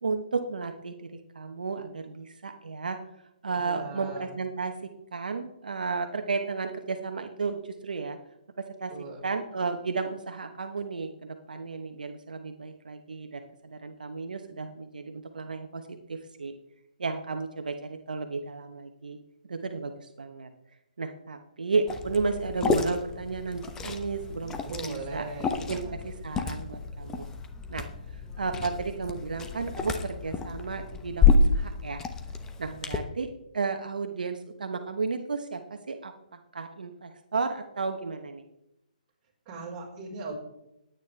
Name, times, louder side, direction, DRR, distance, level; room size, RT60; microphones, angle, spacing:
voice 1, 0.0-3.0 3.4-8.2 8.6-8.9 9.2-16.5 17.0-19.2 19.5-20.5 21.0-27.3 27.7-27.9 28.1-32.1 32.6-38.4, right 4 dB, 80° right, 6 dB, 1.0 m, -33 dB
voice 2, 3.5-4.3 8.9-9.2 24.6-25.9 39.5-40.3, right 3 dB, 25° right, -3 dB, 4.4 m, -39 dB
Liquid, 21.9-33.0, left 4 dB, 10° left, 0.9 m, -29 dB
19.0 x 9.2 x 3.4 m, 0.88 s
hypercardioid pair, 145°, 5 cm